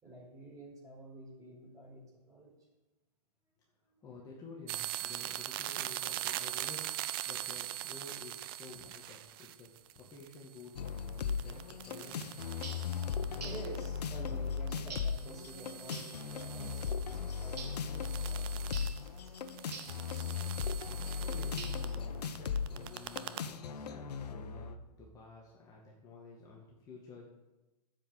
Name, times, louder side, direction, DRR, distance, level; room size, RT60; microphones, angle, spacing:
voice 1, 0.0-2.5 3.9-4.3 12.8-18.4 18.7-19.3, right 2 dB, 15° right, -1 dB, 4.3 m, -50 dB
voice 2, 4.0-7.0 7.3-9.7 10.0-12.3 21.2-27.3, left 4 dB, 15° left, -4 dB, 2.2 m, -51 dB
sound 1, 4.7-14.3 14.6-22.0 22.2-23.4, right 14 dB, 35° right, 0.7 m, -42 dB
sound 2, 10.7-24.8, left 6 dB, 75° left, 1.3 m, -37 dB
sound 3, 12.6-12.9 13.4-13.7 14.9-15.2 15.9-16.2 17.6-17.9 18.7-19.0 19.7-20.0 21.6-22.0, right 5 dB, 80° right, 3.5 m, -46 dB
12.5 x 7.8 x 7.9 m, 1.1 s
hypercardioid pair, 150°, 21 cm